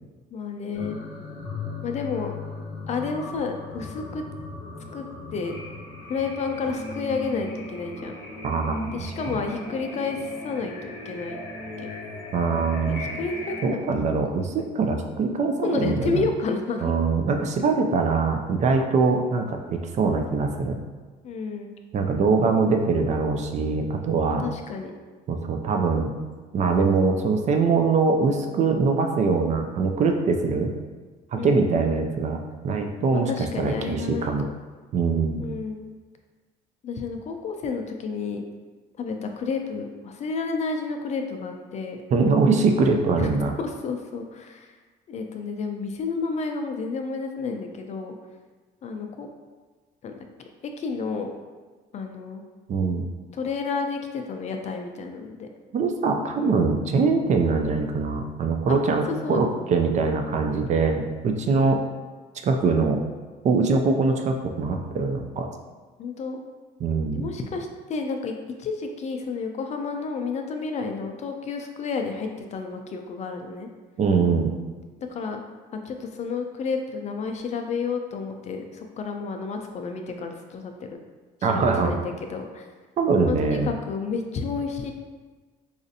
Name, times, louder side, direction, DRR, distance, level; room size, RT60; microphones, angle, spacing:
voice 1, 0.3-1.0 1.8-2.3 2.9-4.2 4.9-5.1 5.3-5.5 6.1-8.1 8.9-11.4 11.8-11.9 12.8-14.1 15.6-16.9 21.2-21.7 24.3-24.9 31.3-31.8 33.1-34.5 35.4-35.9 36.8-38.4 39.0-42.0 43.2-43.3 43.6-44.7 45.1-48.2 48.8-49.3 50.0-50.1 50.8-51.3 51.9-52.4 53.3-55.5 56.3-56.5 58.7-58.8 59.2-59.4 66.0-66.4 67.1-68.3 68.6-73.7 75.1-75.4 75.8-80.7 81.5-82.6 83.3-84.9, left 4 dB, 45° left, 4 dB, 0.4 m, -30 dB
sound 1, 0.7-13.6, left 2 dB, 75° left, 0.7 m, -37 dB
voice 2, 8.4-8.9 9.3-9.4 12.3-13.1 13.6-16.3 16.8-20.8 21.9-24.5 25.3-26.1 26.5-30.7 31.3-34.5 34.9-35.4 42.1-43.5 52.7-53.0 55.7-61.8 62.4-63.0 63.4-65.5 66.8-67.2 74.0-74.5 81.4-82.0 83.0-83.7, right 4 dB, 45° right, 4 dB, 0.4 m, -23 dB
4.1 x 2.5 x 2.6 m, 1.4 s
cardioid pair, 110°, 17 cm